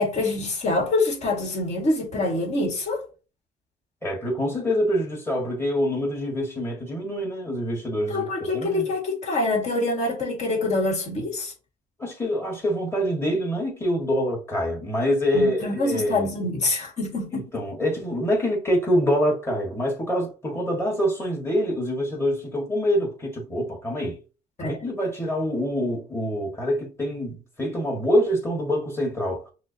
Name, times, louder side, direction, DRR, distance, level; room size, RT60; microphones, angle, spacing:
voice 1, 0.0-3.1 8.1-11.5 15.3-17.4 24.6-24.7, left 2 dB, 45° left, 1.8 m, -25 dB
voice 2, 4.0-8.9 12.0-16.3 17.3-24.2 24.6-29.5, equal, 15° left, 1.6 m, -25 dB
5.9 x 2.1 x 2.8 m
cardioid pair, 110°, 17 cm